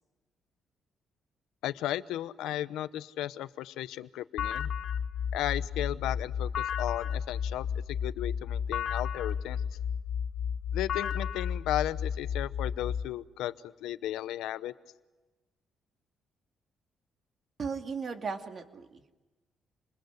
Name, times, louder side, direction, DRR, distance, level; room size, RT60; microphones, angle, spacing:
voice 1, 1.6-4.7 5.3-9.6 10.7-14.7, left 13 dB, 90° left, 14 dB, 0.9 m, -35 dB
sound 1, 4.4-13.1, left 7 dB, 65° left, 1.1 m, -33 dB
voice 2, 17.6-19.1, right 5 dB, 45° right, 5 dB, 2.5 m, -36 dB
28.0 x 21.0 x 9.6 m, 1.2 s
cardioid pair, 90°, 0 cm